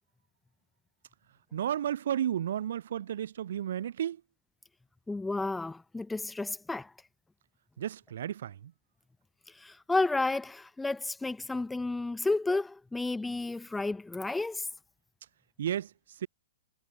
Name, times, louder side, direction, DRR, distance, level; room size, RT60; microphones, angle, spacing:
voice 1, 1.5-4.2 7.8-8.7 15.6-16.3, right 10 dB, 65° right, 0.6 m, -33 dB
voice 2, 5.1-6.9 9.6-14.7, left 3 dB, 5° left, 2.0 m, -31 dB
hypercardioid pair, 135°, 0 cm